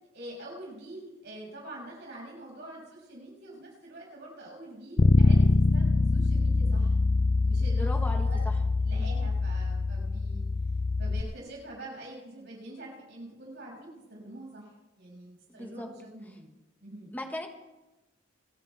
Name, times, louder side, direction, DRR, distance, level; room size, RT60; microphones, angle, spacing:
voice 1, 0.1-7.0 7.4-7.9 8.2-10.4 11.0-16.5 16.8-17.1, right 1 dB, 60° right, -3 dB, 6.2 m, -45 dB
Bass guitar, 5.0-11.2, left 3 dB, 50° left, 0.6 m, -24 dB
voice 2, 7.7-8.3 9.0-9.1 15.5-15.9 17.1-17.5, left 1 dB, 10° left, 3 dB, 1.4 m, -37 dB
28.5 x 10.5 x 3.5 m, 1.0 s
head